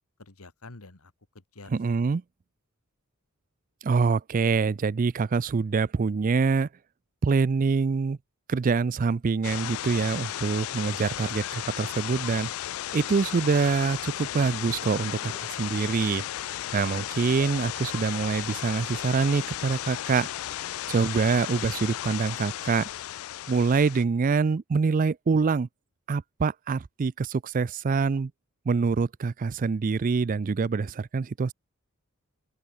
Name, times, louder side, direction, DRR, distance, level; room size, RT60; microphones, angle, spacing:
voice 1, 0.2-1.8 16.8-17.1 20.9-21.3, left 2 dB, 90° left, 2.0 m, -49 dB
voice 2, 1.7-2.2 3.8-6.7 7.2-8.2 8.5-12.5 12.9-16.3 16.7-20.3 20.9-22.9 23.5-25.7 26.1-28.3 28.7-31.5, right 4 dB, 40° right, 0.4 m, -25 dB
sound 1, 8.6-9.1 10.0-10.1 10.5-11.3 11.7-11.8 12.1-12.2 12.5-12.9 14.6-23.2, left 1 dB, 20° left, 5.4 m, -58 dB
sound 2, 9.4-24.0, left 13 dB, 70° left, 0.3 m, -35 dB
open air
head